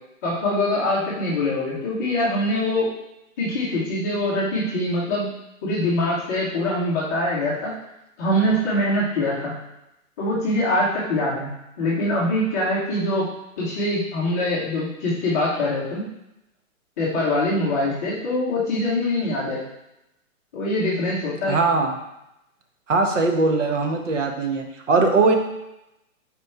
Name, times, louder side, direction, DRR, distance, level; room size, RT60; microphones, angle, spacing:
voice 1, 0.2-2.9 3.4-5.3 5.6-7.7 8.2-9.5 10.2-11.5 11.8-13.2 13.6-16.0 17.0-19.6 20.5-21.6, left 1 dB, 10° left, -8 dB, 0.7 m, -23 dB
voice 2, 21.5-21.9 22.9-25.4, right 3 dB, 60° right, 3 dB, 1.2 m, -20 dB
5.0 x 4.4 x 4.3 m, 0.87 s
hypercardioid pair, 165°, 42 cm